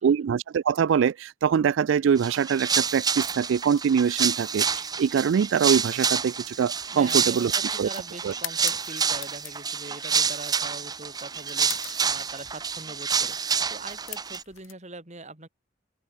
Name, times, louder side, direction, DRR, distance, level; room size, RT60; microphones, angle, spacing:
voice 1, 0.0-7.5 7.8-7.9 8.2-8.3, right 7 dB, 70° right, 0.3 m, -23 dB
sound 1, 2.2-14.4, right 6 dB, 20° right, 0.6 m, -28 dB
sound 2, 3.8-14.7, left 15 dB, 85° left, 2.1 m, -45 dB
voice 2, 6.9-15.5, right 2 dB, 35° right, 3.2 m, -42 dB
open air
head